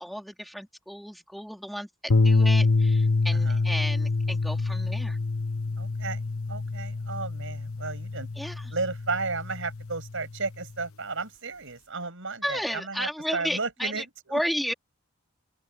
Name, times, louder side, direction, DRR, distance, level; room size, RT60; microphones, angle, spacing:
voice 1, 0.0-5.2 8.4-8.7 12.4-14.1 14.3-14.7, equal, ahead, 3.5 m, -33 dB
sound 1, 2.1-10.5, left 3 dB, 80° left, 1.0 m, -26 dB
voice 2, 5.8-8.3 8.7-14.4, right 3 dB, 60° right, 7.7 m, -34 dB
open air
head